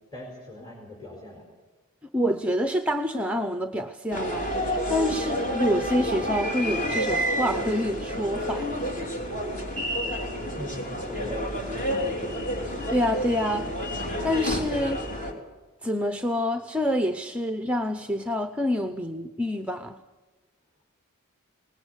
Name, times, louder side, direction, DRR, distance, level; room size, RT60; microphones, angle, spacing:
voice 1, 0.1-1.4 10.0-12.2, left 1 dB, 20° left, -1 dB, 4.5 m, -40 dB
voice 2, 2.1-4.5 4.9-8.7 12.9-13.7 14.2-15.0 15.8-20.0, equal, 5° right, 7 dB, 0.7 m, -27 dB
sound 1, 4.1-15.3, equal, 35° left, 3.3 m, -29 dB
21.0 x 19.0 x 8.1 m, 1.2 s
head